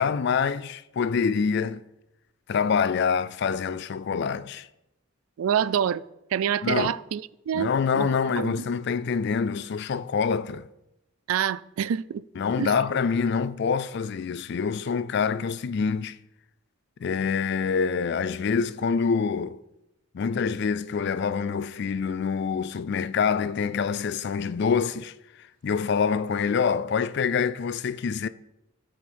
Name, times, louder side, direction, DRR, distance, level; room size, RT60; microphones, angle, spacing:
voice 1, 0.0-1.8 2.5-4.7 6.6-6.9 7.5-10.7 12.4-16.2 17.0-19.6 20.1-25.1 25.6-28.3, left 6 dB, 55° left, 0.3 m, -26 dB
voice 2, 5.4-6.0 6.3-8.1 8.4-8.5 11.3-12.2 12.5-12.7, right 9 dB, 80° right, 0.3 m, -26 dB
13.0 x 4.6 x 4.3 m
head